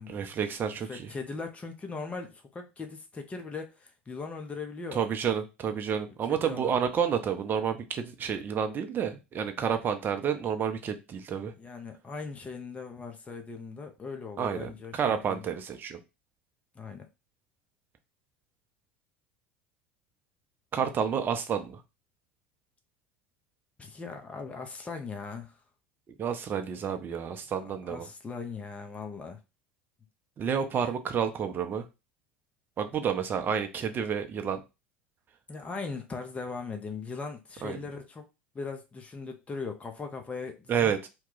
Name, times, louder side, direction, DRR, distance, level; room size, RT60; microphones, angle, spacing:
voice 1, 0.1-1.1 4.9-11.5 14.4-16.0 20.7-21.8 26.2-28.1 30.4-31.8 32.8-34.6 37.6-37.8 40.7-41.1, right 7 dB, 35° right, 0.6 m, -30 dB
voice 2, 0.9-5.0 6.2-6.7 11.5-15.4 16.8-17.1 23.8-25.6 27.6-29.4 35.5-38.2 38.5-40.9, left 4 dB, 20° left, 0.7 m, -39 dB
2.9 x 2.2 x 3.8 m
hypercardioid pair, 75°, 6 cm